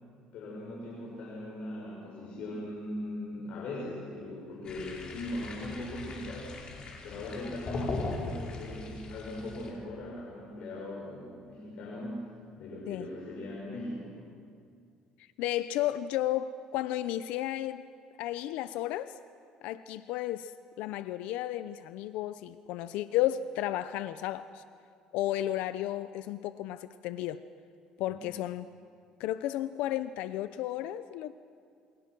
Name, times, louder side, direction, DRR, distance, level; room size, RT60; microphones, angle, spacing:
voice 1, 0.3-6.6 7.0-12.3 12.6-14.2, left 1 dB, 65° left, -4 dB, 6.3 m, -39 dB
sound 1, 4.6-9.7, left 3 dB, 40° left, 4.8 m, -39 dB
voice 2, 15.2-17.8 18.2-19.2 19.6-20.5 20.8-24.6 25.1-27.4 28.0-28.7 29.2-31.3, left 13 dB, 85° left, 13 dB, 0.7 m, -33 dB
28.0 x 25.5 x 6.1 m, 2.3 s
cardioid pair, 115°, 2 cm